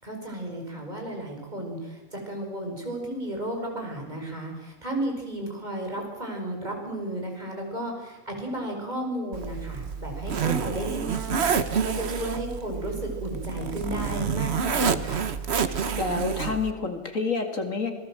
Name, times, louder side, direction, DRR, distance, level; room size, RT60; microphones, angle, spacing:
voice 1, 0.0-15.2, right 1 dB, 30° right, 1 dB, 5.4 m, -33 dB
Zipper (clothing), 9.3-16.7, right 6 dB, 50° right, 1.3 m, -28 dB
voice 2, 15.7-17.9, left 4 dB, 65° left, 6 dB, 2.7 m, -29 dB
26.5 x 19.0 x 7.6 m, 1.2 s
omnidirectional pair, 1.5 m